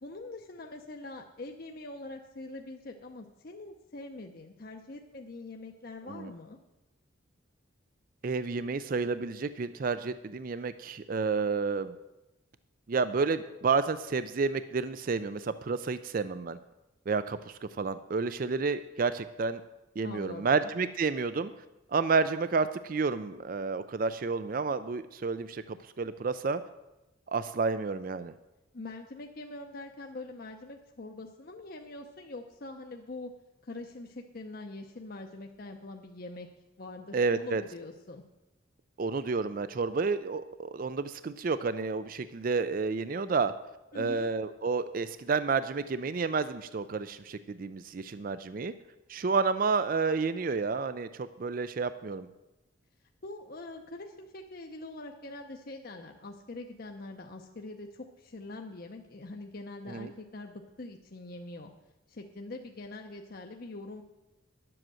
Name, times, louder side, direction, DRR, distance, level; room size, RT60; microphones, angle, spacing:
voice 1, 0.0-6.6 20.0-20.7 28.7-33.3 33.6-36.5 36.8-38.2 43.9-44.3 53.2-61.7 62.1-64.0, left 2 dB, 45° left, 3 dB, 0.7 m, -43 dB
voice 2, 8.2-11.9 12.9-16.6 17.1-19.6 20.0-21.5 21.9-26.6 27.3-28.3 37.1-37.6 39.0-43.5 43.9-48.7 49.1-52.3 59.9-60.1, right 4 dB, 45° right, 13 dB, 0.4 m, -30 dB
11.0 x 7.8 x 7.6 m, 1.0 s
head